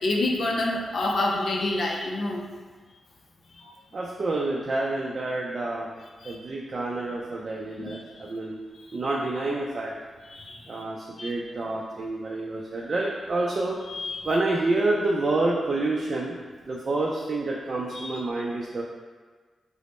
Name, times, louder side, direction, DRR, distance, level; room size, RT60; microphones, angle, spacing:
voice 1, 0.0-2.5 3.5-3.7 6.2-6.4 7.8-8.0 10.3-10.8 11.2-11.3 13.9-14.2 17.9-18.2, left 2 dB, 65° left, -1 dB, 0.5 m, -28 dB
voice 2, 3.9-5.9 6.2-8.6 8.9-9.9 10.7-13.8 14.2-16.4 16.6-18.8, right 2 dB, 55° right, -2 dB, 0.4 m, -28 dB
3.0 x 2.0 x 4.1 m, 1.4 s
supercardioid pair, 45°, 0 cm